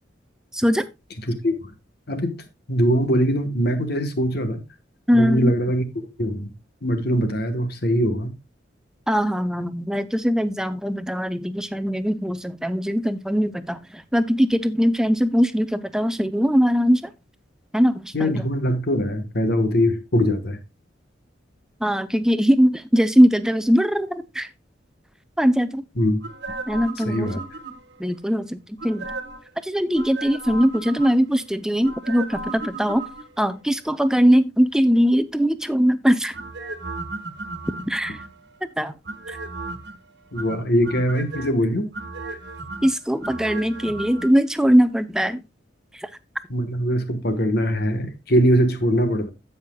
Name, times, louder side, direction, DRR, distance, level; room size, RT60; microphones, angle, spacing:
voice 1, 0.5-0.9 5.1-5.6 9.1-17.1 17.7-18.4 21.8-24.5 25.4-25.8 26.7-27.3 28.0-29.1 29.6-33.0 33.4-36.3 37.9-38.2 38.8-38.9 39.3-39.4 42.8-45.4 45.9-46.1, equal, 5° right, 0.5 m, -21 dB
voice 2, 1.3-1.7 2.1-2.4 2.7-4.6 5.1-6.5 6.8-8.3 18.1-20.6 26.0-26.2 27.0-27.4 40.3-41.9 46.5-49.3, equal, 60° left, 1.3 m, -22 dB
sound 1, 26.2-28.0 28.8-29.5 29.9-31.4 31.8-33.5 36.3-38.5 39.1-40.0 40.4-41.5 41.9-44.3 44.6-44.7, right 3 dB, 65° right, 1.4 m, -35 dB
16.5 x 5.7 x 2.3 m
head